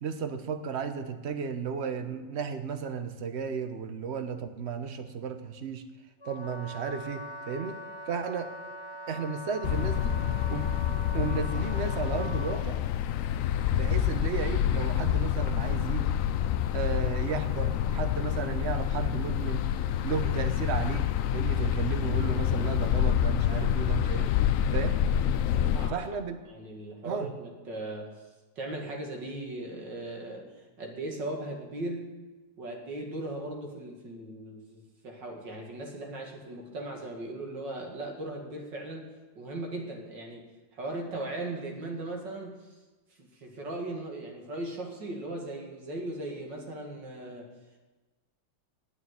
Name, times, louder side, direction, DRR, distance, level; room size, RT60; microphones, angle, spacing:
voice 1, 0.0-5.8 6.2-7.8 8.1-8.5 9.1-10.1 10.5-10.7 11.1-12.8 13.7-16.2 16.7-19.7 20.0-21.1 21.3-24.3 24.7-25.0 25.9-26.4 27.0-27.3, right 6 dB, 45° right, 8 dB, 1.0 m, -34 dB
Wind instrument woodwind instrument, 6.2-12.7, equal, 25° left, 0.6 m, -42 dB
sound 1, 9.6-25.9, left 10 dB, 85° left, 0.7 m, -27 dB
voice 2, 25.6-26.0 26.5-28.1 28.6-30.5 30.8-32.2 32.6-39.0 39.4-40.4 40.7-42.6 43.2-47.5, right 2 dB, 70° right, 0 dB, 2.8 m, -38 dB
9.6 x 9.3 x 9.4 m, 1.2 s
omnidirectional pair, 2.0 m